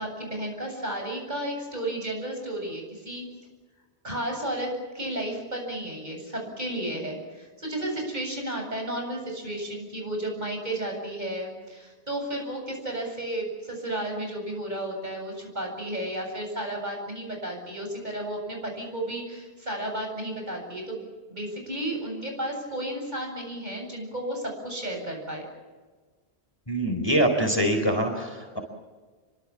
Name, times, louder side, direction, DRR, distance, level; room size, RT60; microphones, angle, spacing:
voice 1, 0.0-3.2 4.0-21.0 21.3-25.5, right 1 dB, 40° right, 2 dB, 8.2 m, -33 dB
voice 2, 26.7-28.6, right 1 dB, 20° left, 4 dB, 4.1 m, -24 dB
28.0 x 24.5 x 7.4 m, 1.4 s
omnidirectional pair, 1.1 m